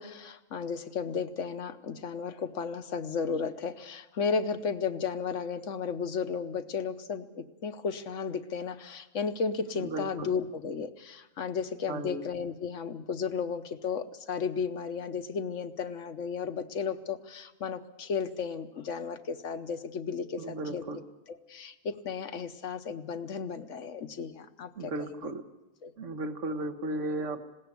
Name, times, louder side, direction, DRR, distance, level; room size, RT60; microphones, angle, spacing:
voice 1, 0.0-20.8 21.3-25.3 25.8-25.9, left 6 dB, 70° left, 10 dB, 1.3 m, -34 dB
voice 2, 9.7-10.3 11.9-12.2 20.4-21.0 24.7-25.4 26.0-27.5, right 2 dB, 65° right, 8 dB, 1.7 m, -35 dB
20.0 x 17.0 x 8.3 m, 1.0 s
omnidirectional pair, 1.4 m